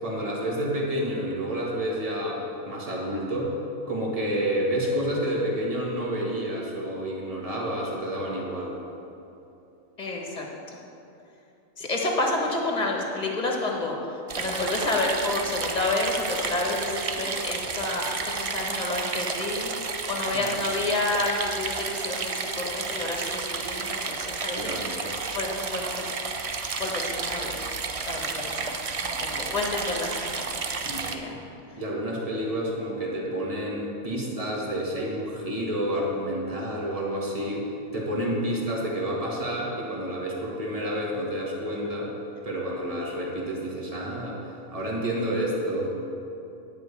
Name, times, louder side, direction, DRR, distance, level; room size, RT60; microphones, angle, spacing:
voice 1, 0.0-3.5 3.9-8.8 20.3-20.5 24.6-25.0 30.8-31.0 31.3-31.4 31.8-42.1 42.4-44.4 44.7-45.9, equal, 25° right, -3 dB, 1.9 m, -29 dB
voice 2, 10.0-10.8 11.8-19.7 20.1-25.0 25.3-26.2 26.8-27.5 28.1-28.7 29.0-30.4 31.0-31.3, left 2 dB, 30° left, 0 dB, 1.5 m, -29 dB
sound 1, 14.3-31.2, right 4 dB, 65° right, 0.3 m, -31 dB
10.5 x 5.3 x 8.3 m, 2.8 s
omnidirectional pair, 1.5 m